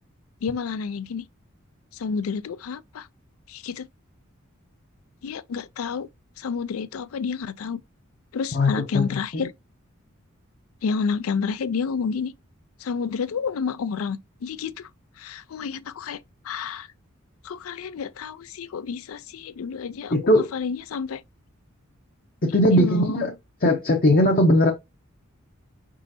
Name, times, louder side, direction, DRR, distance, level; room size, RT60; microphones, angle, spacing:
voice 1, 0.4-1.3 1.9-3.1 3.5-3.9 5.2-6.1 6.4-7.8 8.3-9.5 10.8-12.3 12.8-14.9 15.2-16.9 17.4-21.2 22.7-23.2, left 5 dB, 85° left, 0.4 m, -30 dB
voice 2, 8.5-9.4 20.1-20.5 22.4-23.3 23.6-24.7, left 1 dB, 45° left, 0.7 m, -19 dB
4.9 x 3.8 x 2.7 m
head